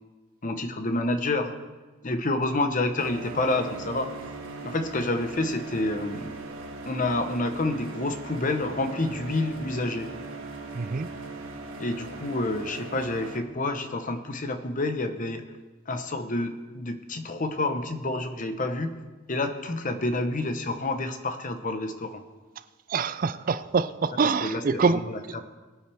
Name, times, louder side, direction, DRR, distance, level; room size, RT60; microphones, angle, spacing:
voice 1, 0.4-1.5 2.0-4.1 4.6-6.3 6.8-10.1 11.8-15.4 15.9-18.9 19.3-22.2 24.2-25.4, left 2 dB, 40° left, 1.0 m, -28 dB
sound 1, 3.0-13.4, right 3 dB, 80° right, 1.5 m, -39 dB
voice 2, 10.7-11.1 22.9-25.0, right 5 dB, 45° right, 0.4 m, -25 dB
21.5 x 9.3 x 3.5 m
head